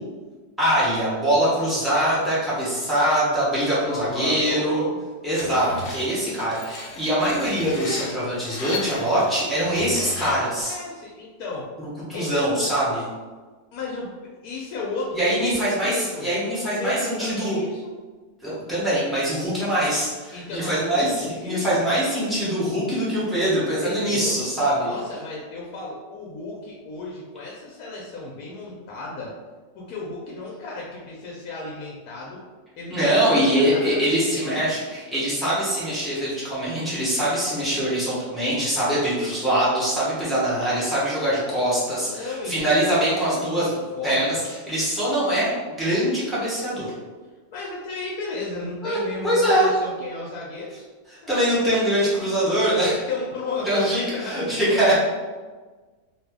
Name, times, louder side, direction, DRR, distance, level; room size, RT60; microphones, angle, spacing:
voice 1, 0.6-4.8 5.2-10.7 11.8-13.0 15.1-17.6 18.4-24.9 32.9-43.7 44.0-46.9 48.8-49.0 49.2-49.8 51.3-52.9 53.6-54.9, right 1 dB, ahead, -11 dB, 0.3 m, -23 dB
voice 2, 3.8-5.0 10.6-11.7 12.1-12.3 13.7-16.3 16.6-17.9 20.3-22.0 23.8-24.4 24.9-29.3 29.7-32.4 32.8-34.4 34.7-34.8 42.0-44.2 47.5-50.9 52.7-54.9, left 2 dB, 70° left, -4 dB, 0.9 m, -34 dB
Screech, 5.3-10.6, left 4 dB, 90° left, 1.3 m, -36 dB
2.6 x 2.6 x 3.4 m, 1.4 s
omnidirectional pair, 1.9 m